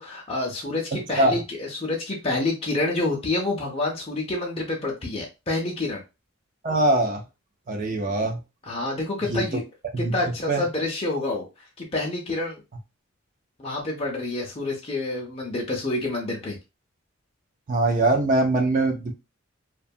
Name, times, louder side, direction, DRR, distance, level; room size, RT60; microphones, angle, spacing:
voice 1, 0.0-6.0 8.7-9.6 10.1-11.5 11.8-12.6 13.6-16.6, left 2 dB, 25° left, -2 dB, 0.5 m, -28 dB
voice 2, 6.6-7.2 7.7-8.4 9.3-9.6 9.9-10.1 10.5-10.6 17.7-19.1, right 2 dB, 35° right, 2 dB, 0.4 m, -22 dB
2.5 x 2.2 x 2.6 m, 0.26 s
head